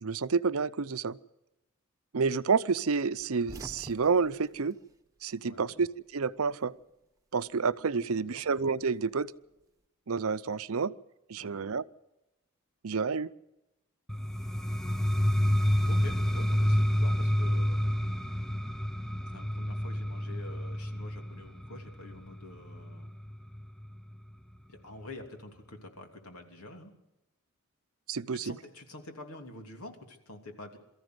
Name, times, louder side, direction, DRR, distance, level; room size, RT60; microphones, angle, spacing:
voice 1, 0.0-1.2 2.1-4.8 5.2-6.7 7.3-9.3 10.1-10.9 11.3-11.8 12.8-13.3 28.1-28.5, right 5 dB, 75° right, 15 dB, 0.6 m, -29 dB
sound 1, 3.2-5.7 6.0-7.1 8.2-9.7, right 1 dB, 15° right, 1.1 m, -50 dB
voice 2, 5.4-5.7 7.9-8.4 11.4-11.6 15.9-18.0 19.3-23.1 24.7-26.9 28.3-30.8, left 2 dB, 85° left, 4 dB, 3.1 m, -47 dB
sound 2, 14.1-23.9, equal, ahead, 0.6 m, -29 dB
23.0 x 14.0 x 7.9 m, 0.93 s
head